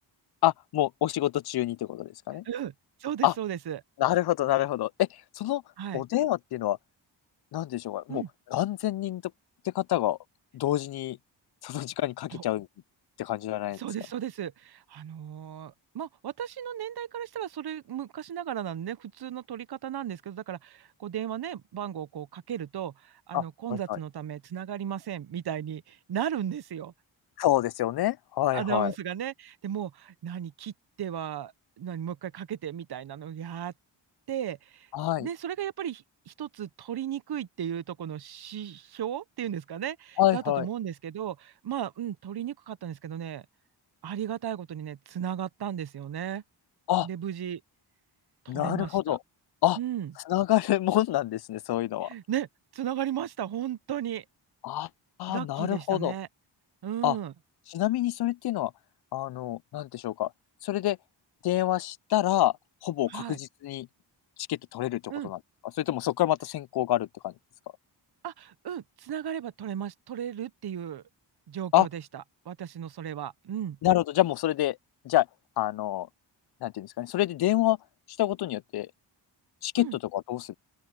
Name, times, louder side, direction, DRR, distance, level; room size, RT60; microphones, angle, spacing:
voice 1, 0.4-2.4 3.2-3.3 4.0-5.6 5.9-6.8 7.5-9.2 9.6-10.2 10.5-11.2 11.6-12.7 13.2-13.8 23.3-23.4 23.7-24.0 27.4-28.9 34.9-35.3 40.2-40.7 46.9-47.1 48.5-49.2 49.6-49.8 50.3-52.1 54.6-54.9 55.2-56.1 57.0-57.2 57.7-58.7 59.1-60.3 60.6-61.0 61.4-62.5 62.8-63.9 64.5-65.4 65.8-67.3 71.7-71.9 73.8-74.8 75.0-75.3 75.6-76.1 76.6-77.8 78.2-78.9 79.6-80.5, left 14 dB, 55° left, 0.5 m, -27 dB
voice 2, 3.0-3.8 5.8-6.0 8.1-8.3 12.3-12.4 13.8-26.9 28.5-30.7 31.0-33.7 34.3-34.9 35.2-43.4 44.0-46.4 47.0-47.6 48.4-49.2 49.8-50.1 52.0-52.5 52.7-54.2 55.3-56.3 56.8-57.3 63.1-63.4 65.1-65.3 68.2-71.0 71.5-73.8 79.8-80.0, right 10 dB, 50° right, 0.8 m, -35 dB
open air
cardioid pair, 55°, 48 cm